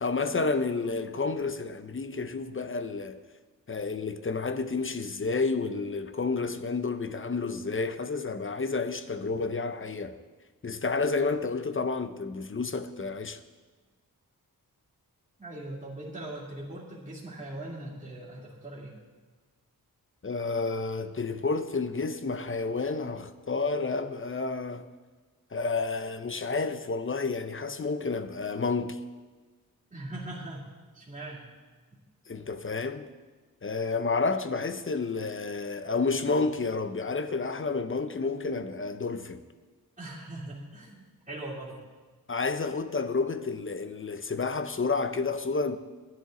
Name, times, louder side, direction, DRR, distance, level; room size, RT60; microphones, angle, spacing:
voice 1, 0.0-3.2 3.7-10.2 10.6-13.4 20.2-24.9 25.5-29.0 32.3-33.1 33.6-39.4 42.3-45.8, left 4 dB, 35° left, 0.7 m, -30 dB
voice 2, 15.4-19.0 29.9-30.7 30.9-31.4 40.0-41.8, right 1 dB, 20° right, 2.8 m, -40 dB
13.5 x 10.5 x 3.9 m
cardioid pair, 65°, 37 cm